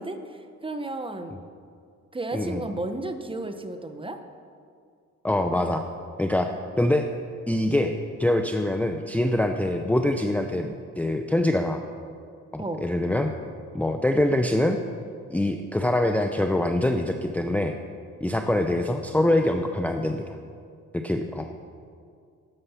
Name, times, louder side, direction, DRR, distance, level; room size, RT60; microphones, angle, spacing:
voice 1, 0.0-1.3 2.1-4.2 12.6-12.8, right 2 dB, 15° right, 7 dB, 1.0 m, -33 dB
voice 2, 5.2-5.8 6.2-6.5 6.8-7.1 7.5-11.8 12.5-13.3 13.7-14.8 15.3-17.7 18.2-20.3 20.9-21.5, left 1 dB, 5° left, 5 dB, 0.6 m, -24 dB
12.0 x 9.5 x 5.7 m, 2.3 s
cardioid pair, 90°, 30 cm